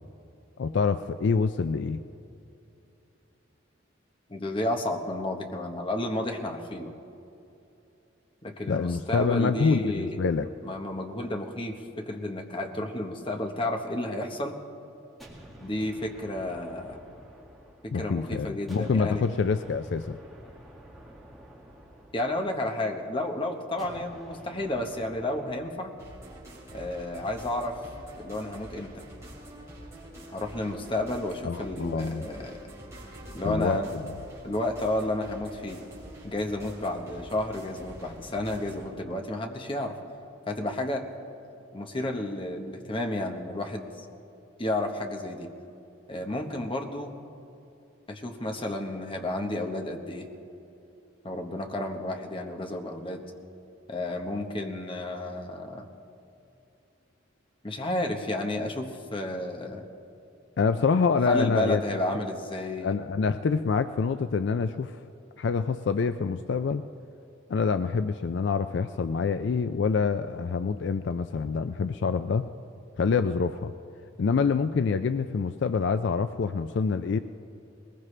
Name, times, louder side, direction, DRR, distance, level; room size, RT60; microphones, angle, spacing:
voice 1, 0.6-2.0 8.7-10.5 17.9-20.2 31.4-32.2 33.4-34.1 60.6-61.8 62.8-65.0 65.4-66.8 67.5-72.5 73.0-73.7 74.2-77.2, left 5 dB, 60° left, 10 dB, 0.4 m, -26 dB
voice 2, 4.3-6.9 8.4-14.5 15.6-17.0 17.8-19.2 22.1-25.9 26.7-27.8 28.2-29.0 30.3-32.6 33.3-34.0 34.4-35.8 36.2-40.0 40.5-41.1 41.7-44.1 44.6-45.5 46.1-47.1 48.1-50.3 51.2-53.2 53.9-55.9 57.6-59.9 61.3-63.0, left 1 dB, 25° left, 3 dB, 1.1 m, -31 dB
sound 1, 15.2-18.2 18.7-22.9 23.8-25.9, right 1 dB, ahead, 2.1 m, -50 dB
sound 2, 26.0-38.9, right 1 dB, 15° right, 3.8 m, -46 dB
21.0 x 20.0 x 3.3 m, 2.8 s
head